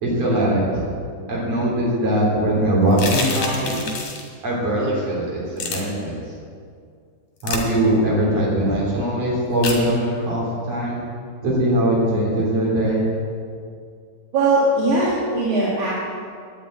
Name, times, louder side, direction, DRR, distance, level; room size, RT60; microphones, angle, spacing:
voice 1, 0.0-0.8 1.3-3.8 4.4-6.1 7.4-11.0 11.4-13.1, right 1 dB, 55° right, -5 dB, 4.5 m, -21 dB
sound 1, 2.9-4.3 5.6-5.8 7.4-7.6 9.6-9.8, left 4 dB, 60° left, 3.0 m, -27 dB
voice 2, 14.3-16.0, right 2 dB, 75° right, -7 dB, 3.2 m, -19 dB
10.5 x 7.4 x 8.8 m, 2.2 s
omnidirectional pair, 3.5 m